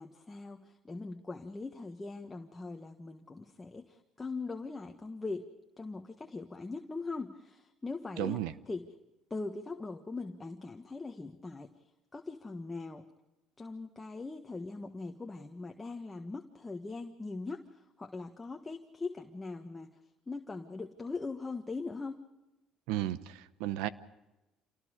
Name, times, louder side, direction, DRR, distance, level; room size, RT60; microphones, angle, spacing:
voice 1, 0.0-5.5 5.8-8.4 8.7-8.9 9.3-11.7 12.1-13.1 13.6-20.0 20.3-22.2, left 3 dB, 20° left, 4 dB, 1.5 m, -41 dB
voice 2, 8.2-8.5 22.9-23.9, right 13 dB, 90° right, 15 dB, 0.9 m, -34 dB
28.0 x 19.5 x 5.1 m, 1.0 s
cardioid pair, 95°, 0 cm